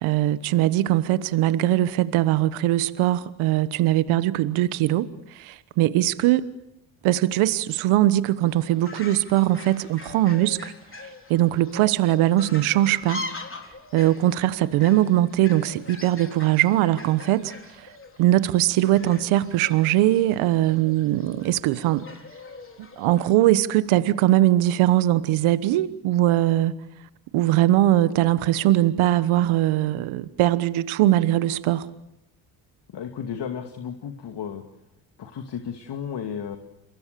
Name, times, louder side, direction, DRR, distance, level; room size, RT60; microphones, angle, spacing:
voice 1, 0.0-6.5 7.0-10.7 11.3-13.2 13.9-17.9 18.2-22.1 23.0-26.7 27.3-31.9, right 14 dB, 75° right, 1.2 m, -21 dB
Fowl, 8.5-23.3, left 3 dB, 25° left, 4.1 m, -42 dB
voice 2, 32.9-34.6 35.2-36.6, left 7 dB, 55° left, 2.5 m, -33 dB
30.0 x 23.0 x 6.9 m
supercardioid pair, 65°, 49 cm